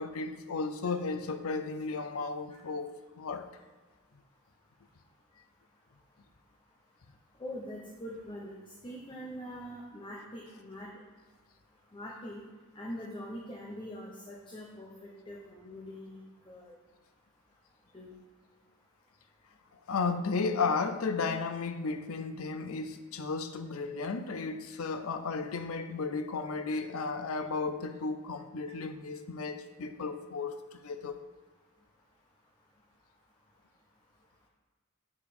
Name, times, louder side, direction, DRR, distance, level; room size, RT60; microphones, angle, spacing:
voice 1, 0.0-3.5 19.9-31.3, left 4 dB, 70° left, 0.6 m, -34 dB
voice 2, 7.4-8.5 8.8-11.0 11.9-12.4 12.7-16.7 17.9-18.1, equal, 20° left, 0.9 m, -43 dB
7.2 x 4.9 x 5.1 m
head